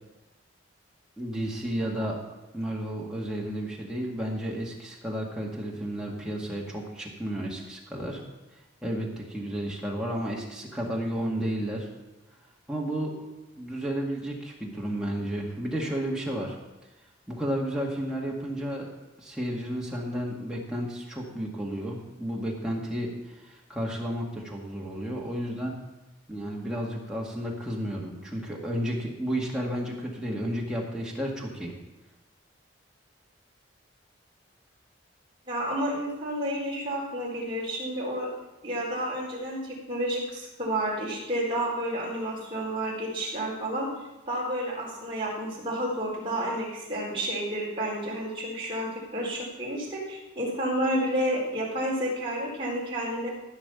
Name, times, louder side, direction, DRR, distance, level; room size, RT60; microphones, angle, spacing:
voice 1, 1.2-2.2 2.5-8.2 8.8-11.9 12.7-13.3 13.6-16.6 17.3-18.9 19.2-25.8 26.3-31.8, equal, 5° right, -3 dB, 2.0 m, -32 dB
voice 2, 35.5-38.3 38.6-43.9 44.3-53.3, right 1 dB, 25° right, -5 dB, 4.2 m, -30 dB
14.5 x 5.9 x 7.0 m, 1.0 s
head